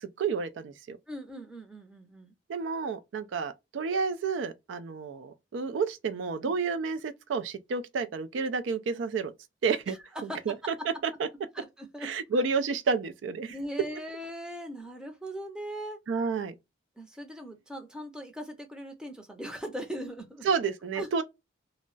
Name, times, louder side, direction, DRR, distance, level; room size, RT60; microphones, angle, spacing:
voice 1, 0.0-1.0 2.5-9.3 9.6-10.0 10.2-11.3 12.0-13.6 16.1-16.5 20.4-21.2, right 5 dB, 75° right, 0.4 m, -30 dB
voice 2, 1.1-2.3 6.4-6.5 9.9-10.5 11.5-12.4 13.5-16.0 17.0-20.5 21.0-21.1, equal, 5° right, 0.5 m, -40 dB
2.2 x 2.0 x 3.7 m
head